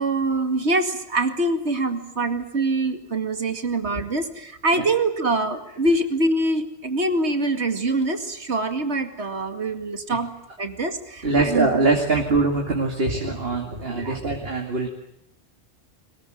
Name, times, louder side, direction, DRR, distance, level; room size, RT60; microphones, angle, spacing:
voice 1, 0.0-10.3 10.6-11.7 14.0-14.2, right 2 dB, 80° right, 8 dB, 2.5 m, -24 dB
voice 2, 11.2-14.9, right 3 dB, 60° right, 2 dB, 2.6 m, -23 dB
22.5 x 21.0 x 9.2 m, 0.78 s
omnidirectional pair, 1.1 m